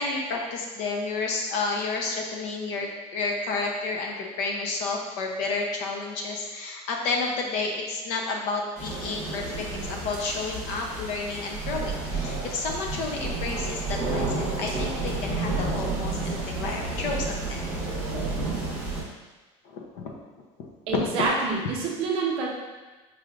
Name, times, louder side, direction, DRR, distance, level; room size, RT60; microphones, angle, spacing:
voice 1, 0.0-17.7 19.6-20.1 20.6-21.1, left 3 dB, 50° left, 1 dB, 0.6 m, -31 dB
sound 1, 8.8-19.0, right 3 dB, 25° right, 1.3 m, -31 dB
voice 2, 20.9-22.5, right 4 dB, 40° right, -1 dB, 0.5 m, -27 dB
4.7 x 3.1 x 2.4 m, 1.2 s
cardioid pair, 180°, 15 cm